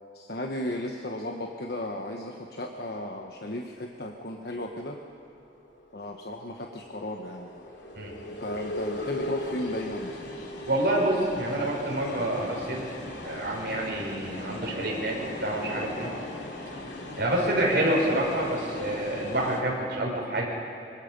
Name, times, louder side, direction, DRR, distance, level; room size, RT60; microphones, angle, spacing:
voice 1, 0.1-5.0 5.9-7.6 8.4-10.1, left 1 dB, 60° left, 2 dB, 1.2 m, -35 dB
sound 1, 5.5-19.6, left 1 dB, 85° left, 3.1 m, -38 dB
voice 2, 10.7-12.9 13.2-15.1 15.4-16.1 17.2-20.5, right 1 dB, 60° right, -3 dB, 6.2 m, -27 dB
25.0 x 24.5 x 5.4 m, 2.6 s
head